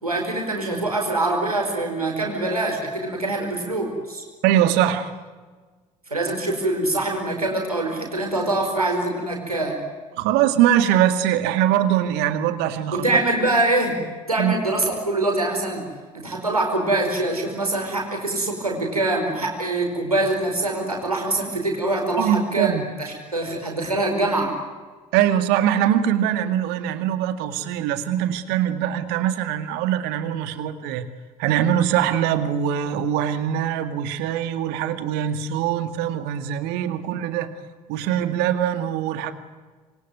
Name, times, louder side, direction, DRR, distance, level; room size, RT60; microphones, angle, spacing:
voice 1, 0.0-4.2 6.1-9.8 12.9-14.0 14.3-15.8 16.1-22.7 23.0-24.6, right 2 dB, 85° right, 1 dB, 5.0 m, -24 dB
voice 2, 4.4-5.1 10.2-13.1 13.4-13.5 14.4-14.5 22.2-22.9 25.1-31.1 31.4-37.5 37.9-39.3, right 10 dB, 60° right, 10 dB, 2.2 m, -22 dB
27.0 x 23.0 x 9.5 m, 1.4 s
figure-of-eight pair, 55°, 19 cm